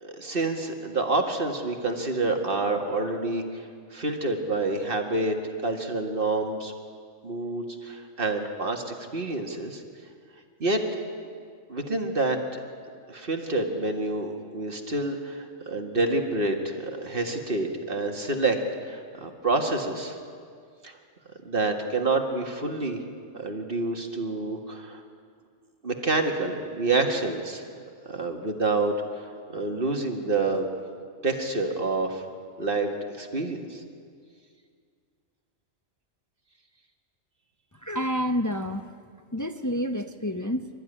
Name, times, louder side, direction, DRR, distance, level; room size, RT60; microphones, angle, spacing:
voice 1, 0.0-3.7 3.9-5.3 5.6-6.7 7.2-9.8 10.6-10.8 11.7-12.4 13.1-18.6 18.8-20.2 20.8-21.0 21.5-23.0 23.3-25.0 25.8-27.6 28.1-30.7 31.2-32.2 32.6-33.8, right 2 dB, 40° right, 3 dB, 1.9 m, -28 dB
voice 2, 37.7-38.9 39.3-40.7, equal, 25° left, 7 dB, 0.4 m, -29 dB
25.0 x 13.0 x 10.0 m, 2.2 s
omnidirectional pair, 1.5 m